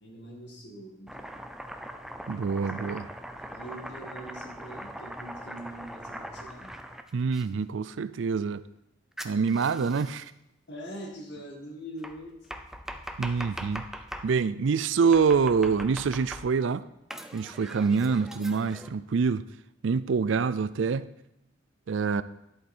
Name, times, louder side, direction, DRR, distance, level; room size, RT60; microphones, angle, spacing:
voice 1, 0.0-1.3 2.6-3.0 3.2-6.8 10.7-12.4, equal, 60° left, 2.1 m, -43 dB
Domestic sounds home sounds, 1.1-7.5 9.2-10.3 12.0-14.3 15.1-16.7 17.1-18.9, equal, ahead, 0.5 m, -41 dB
voice 2, 2.3-3.1 7.1-8.6 9.2-10.3 13.2-13.8 14.2-16.8 17.3-19.4 19.8-21.1 21.9-22.2, right 5 dB, 70° right, 0.4 m, -26 dB
11.0 x 8.1 x 4.4 m
head